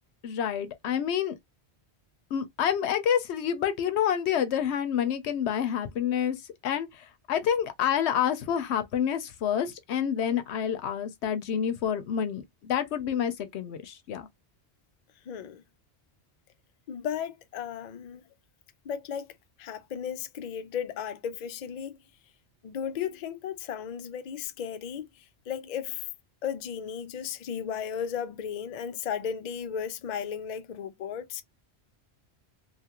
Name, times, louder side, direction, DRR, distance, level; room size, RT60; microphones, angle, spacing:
voice 1, 0.2-1.3 2.3-14.3, left 9 dB, 80° left, 0.9 m, -28 dB
voice 2, 15.3-15.6 16.9-18.2 18.8-19.3 19.6-22.0 22.6-26.1 26.4-31.4, left 8 dB, 55° left, 0.5 m, -35 dB
2.7 x 2.4 x 2.9 m
omnidirectional pair, 1.1 m